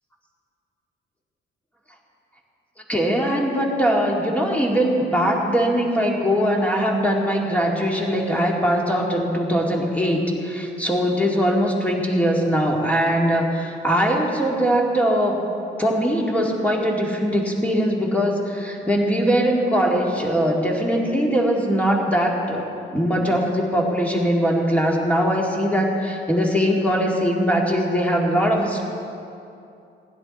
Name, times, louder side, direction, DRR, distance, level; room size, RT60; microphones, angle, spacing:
voice 1, 2.9-15.4 15.8-28.8, equal, 5° left, -2 dB, 2.3 m, -21 dB
15.5 x 11.5 x 4.3 m, 2.6 s
cardioid pair, 90°, 20 cm